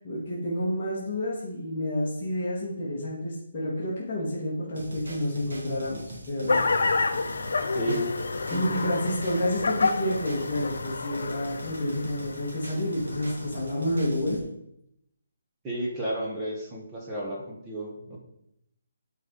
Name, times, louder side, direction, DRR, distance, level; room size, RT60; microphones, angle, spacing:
voice 1, 0.0-6.6 7.9-8.0 8.5-14.4, left 1 dB, 10° left, -12 dB, 1.4 m, -29 dB
sound 1, 4.7-14.4, right 1 dB, 75° right, 1.9 m, -43 dB
sound 2, 6.5-13.5, left 3 dB, 60° left, 0.5 m, -29 dB
voice 2, 7.7-8.1 8.5-9.0 15.6-18.2, right 1 dB, 10° right, -3 dB, 0.7 m, -32 dB
9.9 x 4.1 x 3.7 m, 0.77 s
hypercardioid pair, 180°, 0 cm